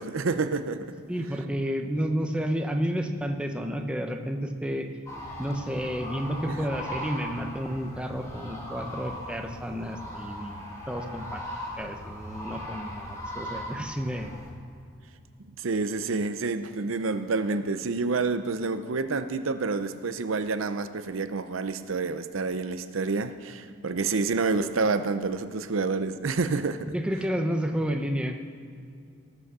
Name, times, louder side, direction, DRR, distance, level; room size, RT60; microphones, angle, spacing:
voice 1, 0.0-0.9 15.6-26.9, right 4 dB, 80° right, 10 dB, 0.7 m, -28 dB
voice 2, 1.1-4.9 5.4-11.4 11.8-14.3 26.9-28.4, equal, 5° right, 3 dB, 0.8 m, -31 dB
sound 1, 5.1-14.5, equal, 15° left, 2.1 m, -39 dB
18.0 x 6.2 x 6.8 m, 2.3 s
head